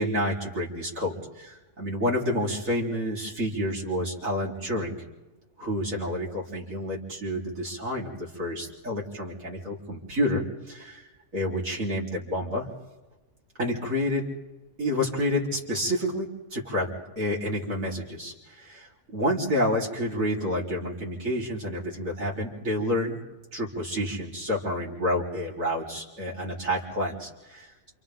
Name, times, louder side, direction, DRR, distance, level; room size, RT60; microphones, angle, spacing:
voice 1, 0.0-4.9 5.6-11.0 11.3-12.7 13.6-14.2 14.8-16.9 17.2-23.2 23.5-27.9, left 1 dB, 70° right, -4 dB, 4.8 m, -29 dB
29.0 x 28.0 x 3.9 m, 1.1 s
omnidirectional pair, 1.4 m